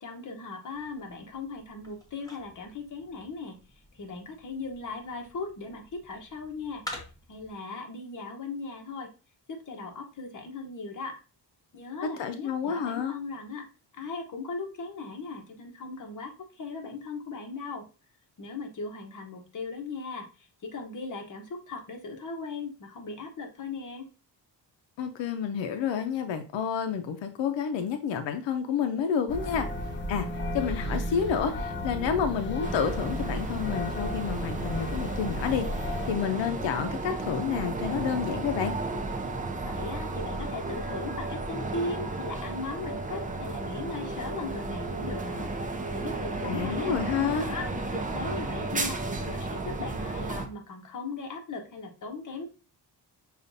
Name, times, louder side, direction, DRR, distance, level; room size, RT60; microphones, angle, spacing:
voice 1, 0.0-3.6 3.9-6.8 7.3-9.1 9.5-11.2 11.7-13.7 13.9-17.9 18.4-24.1 39.6-45.5 45.9-52.5, left 3 dB, 45° left, 3 dB, 1.0 m, -38 dB
sound 1, 0.7-7.5, left 1 dB, 10° left, 1.1 m, -48 dB
voice 2, 12.2-13.1 25.0-29.7 30.1-30.3 30.5-38.7 46.4-47.5, left 7 dB, 90° left, 7 dB, 0.6 m, -29 dB
sound 2, 29.3-36.2, left 1 dB, 25° left, 0.7 m, -34 dB
sound 3, 32.6-50.5, right 2 dB, 20° right, 0.6 m, -33 dB
6.5 x 2.4 x 2.6 m, 0.34 s
cardioid pair, 105°, 43 cm